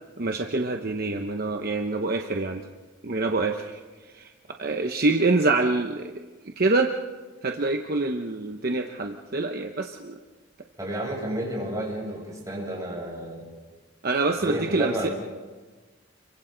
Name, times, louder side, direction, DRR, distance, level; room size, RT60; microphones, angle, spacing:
voice 1, 0.2-2.6 3.0-3.8 4.1-4.3 4.6-6.2 6.6-6.9 7.4-10.2 14.0-15.1, right 3 dB, 50° right, 4 dB, 0.9 m, -25 dB
voice 2, 10.8-13.5 14.3-15.1, right 1 dB, 15° right, -4 dB, 7.7 m, -31 dB
30.0 x 24.0 x 4.0 m, 1.3 s
head